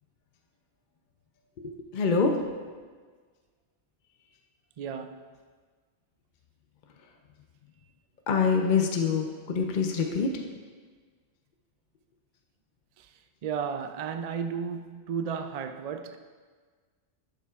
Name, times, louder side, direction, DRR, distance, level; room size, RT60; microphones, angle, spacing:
voice 1, 1.9-2.3 8.3-10.3, left 5 dB, 50° left, 0.7 m, -25 dB
voice 2, 4.8-5.2 13.0-13.1 13.4-16.2, right 6 dB, 65° right, 0.3 m, -33 dB
12.0 x 7.2 x 2.4 m
omnidirectional pair, 1.2 m